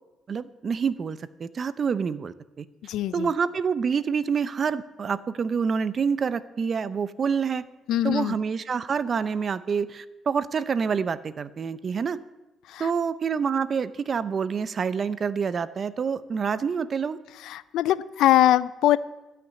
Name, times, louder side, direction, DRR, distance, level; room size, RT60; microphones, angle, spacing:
voice 1, 0.3-2.7 3.1-7.7 8.0-12.2 12.8-17.2, right 6 dB, 45° right, 16 dB, 0.6 m, -27 dB
voice 2, 2.8-3.3 7.9-8.3 12.7-12.9 17.4-19.0, left 13 dB, 85° left, 18 dB, 0.4 m, -22 dB
13.0 x 6.0 x 9.3 m, 1.1 s
cardioid pair, 90°, 0 cm